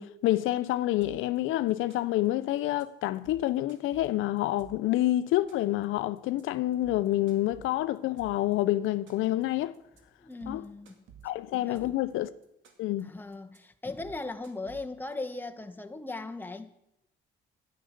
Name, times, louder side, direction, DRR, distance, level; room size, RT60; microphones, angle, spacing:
voice 1, 0.0-9.8 10.5-10.6 11.2-12.3 12.8-13.1, left 15 dB, 90° left, 0.5 m, -28 dB
sound 1, 1.0-1.4 1.7-2.3 2.6-2.8 3.1-5.0 5.3-5.8 6.2-6.4 6.7-8.5 8.8-9.4 9.7-10.0 10.3-12.1 12.4-13.0 13.3-13.6 13.9-15.1, right 8 dB, 75° right, 2.1 m, -53 dB
voice 2, 10.2-11.0 11.7-12.0 13.0-16.7, left 3 dB, 10° left, 1.1 m, -38 dB
11.0 x 10.5 x 6.5 m
cardioid pair, 90°, 20 cm